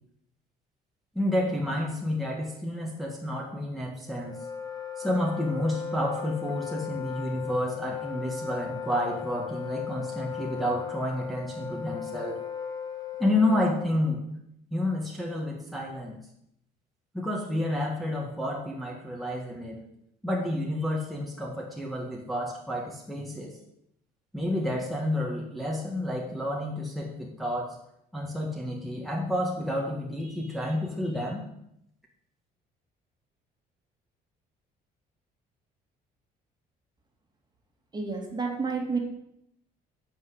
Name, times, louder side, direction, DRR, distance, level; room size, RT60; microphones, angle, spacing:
voice 1, 1.2-4.5 5.0-12.4 13.2-14.2 14.7-16.2 17.1-19.8 20.2-23.5 24.3-27.8 28.1-31.4, left 1 dB, ahead, -3 dB, 1.9 m, -30 dB
Wind instrument woodwind instrument, 4.1-14.0, left 8 dB, 20° left, 1.5 m, -37 dB
voice 2, 37.9-39.0, right 4 dB, 25° right, 1 dB, 2.4 m, -30 dB
9.3 x 5.8 x 8.1 m, 0.77 s
cardioid pair, 110°, 17 cm